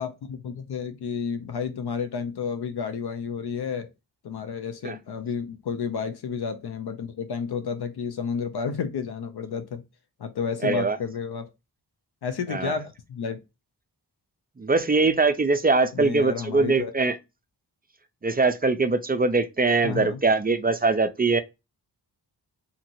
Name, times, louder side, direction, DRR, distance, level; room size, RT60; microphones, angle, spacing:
voice 1, 0.0-3.9 4.2-9.8 10.2-11.5 12.2-13.4 15.9-16.9 19.8-20.2, left 6 dB, 65° left, 0.5 m, -31 dB
voice 2, 10.6-11.0 12.5-12.7 14.6-17.2 18.2-21.4, right 3 dB, 25° right, 0.3 m, -22 dB
2.8 x 2.8 x 2.6 m
cardioid pair, 50°, 43 cm